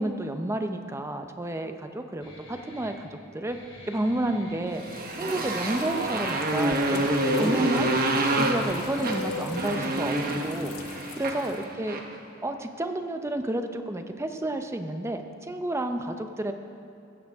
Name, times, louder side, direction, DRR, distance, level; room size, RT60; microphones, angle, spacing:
voice 1, 0.0-3.1 3.3-3.6 3.9-4.8 5.1-8.0 8.4-12.0 12.4-16.5, right 1 dB, 15° right, 6 dB, 0.7 m, -31 dB
Guitar, 2.2-10.2, left 1 dB, 25° left, 3.7 m, -49 dB
Motorcycle, 4.7-12.1, right 1 dB, 45° right, 1.2 m, -27 dB
sound 1, 4.9-11.5, left 3 dB, 90° left, 0.7 m, -38 dB
15.5 x 14.0 x 3.6 m, 2.7 s
head